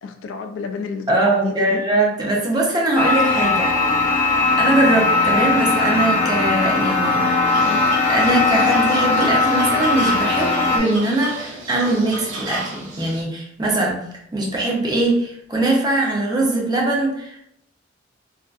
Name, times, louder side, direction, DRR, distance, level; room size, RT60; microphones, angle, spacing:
voice 1, 0.0-1.8 7.6-7.9, left 5 dB, 80° left, 6 dB, 0.3 m, -30 dB
voice 2, 1.1-3.7 4.6-7.5 8.1-14.0 14.3-17.4, right 2 dB, 20° right, -1 dB, 0.5 m, -21 dB
sound 1, 3.0-10.8, left 3 dB, 40° left, 0.6 m, -19 dB
sound 2, 7.5-13.2, right 1 dB, 85° right, 0.7 m, -33 dB
2.5 x 2.4 x 2.3 m, 0.73 s
head